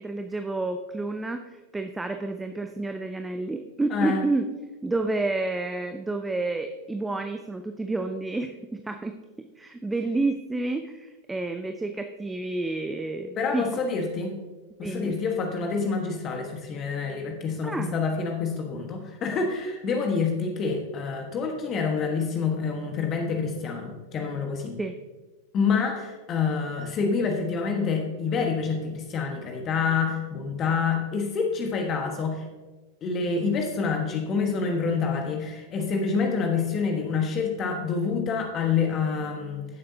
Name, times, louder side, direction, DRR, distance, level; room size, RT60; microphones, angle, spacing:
voice 1, 0.0-4.5 4.8-13.7 14.8-15.2 17.6-18.0 24.8-25.0, right 2 dB, 10° right, 6 dB, 0.6 m, -30 dB
voice 2, 3.9-4.2 13.4-14.3 14.8-24.8 25.5-32.5 33.0-39.7, left 5 dB, 30° left, 3 dB, 1.4 m, -27 dB
16.0 x 7.6 x 2.8 m, 1.2 s
figure-of-eight pair, 90°, 0 cm